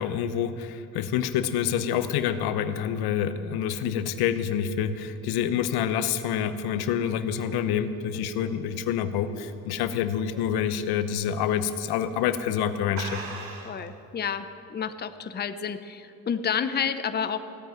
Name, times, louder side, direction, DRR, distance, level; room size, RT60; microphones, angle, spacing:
voice 1, 0.0-13.2, left 9 dB, 75° left, 11 dB, 0.9 m, -27 dB
sound 1, 6.8-9.9 10.3-10.6 11.0-11.1 11.9-12.1 12.4-12.5 12.9-13.9, right 4 dB, 60° right, 2.6 m, -41 dB
voice 2, 13.6-17.4, left 7 dB, 25° left, 10 dB, 0.8 m, -30 dB
16.5 x 7.9 x 9.0 m, 2.6 s
supercardioid pair, 95°, 38 cm